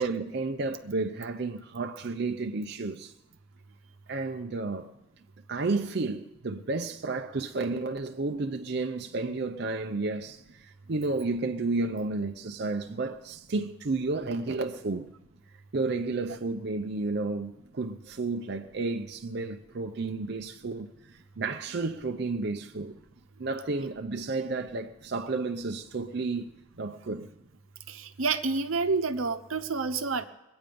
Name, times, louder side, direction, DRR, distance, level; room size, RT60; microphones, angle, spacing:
voice 1, 0.0-3.1 4.1-4.9 5.5-15.1 15.7-20.9 21.4-22.9 23.4-26.5 26.8-27.3, right 3 dB, 55° right, 0.6 m, -32 dB
voice 2, 27.9-30.2, right 4 dB, 80° right, 0.9 m, -29 dB
22.0 x 8.8 x 5.2 m
head